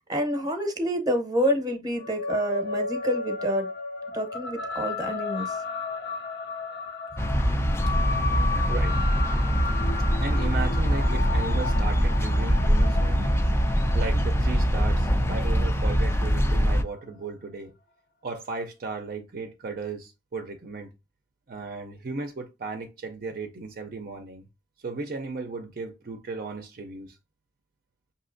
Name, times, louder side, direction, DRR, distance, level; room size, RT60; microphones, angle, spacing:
voice 1, 0.1-3.7 4.1-5.6, equal, 20° right, 0.8 m, -28 dB
sound 1, 2.0-16.7, left 4 dB, 65° left, 0.5 m, -34 dB
sound 2, 7.2-16.8, equal, 15° left, 0.4 m, -23 dB
voice 2, 8.7-9.0 10.2-13.4 13.9-17.7 18.2-20.9 21.5-24.4 24.8-27.2, right 3 dB, 50° right, 0.5 m, -35 dB
5.7 x 2.8 x 2.5 m
head